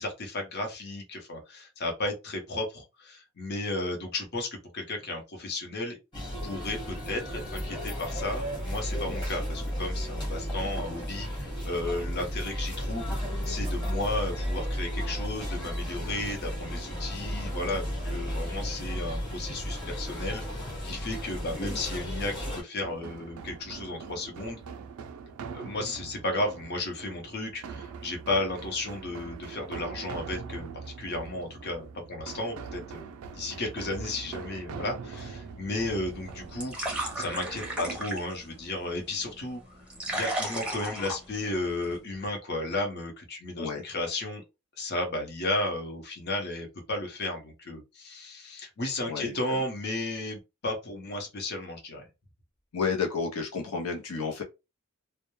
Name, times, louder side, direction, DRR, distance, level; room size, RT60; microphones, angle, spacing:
voice 1, 0.0-6.0 6.4-24.6 25.5-39.8 40.1-44.4 44.8-52.0, left 2 dB, 50° left, 0.7 m, -34 dB
sound 1, 6.1-22.6, equal, 20° left, 1.1 m, -33 dB
sound 2, 22.8-38.0, right 5 dB, 75° right, 0.4 m, -42 dB
sound 3, 36.0-42.0, right 1 dB, 5° right, 0.6 m, -36 dB
voice 2, 49.0-49.6 52.7-54.4, left 5 dB, 85° left, 0.6 m, -32 dB
2.2 x 2.1 x 3.0 m
head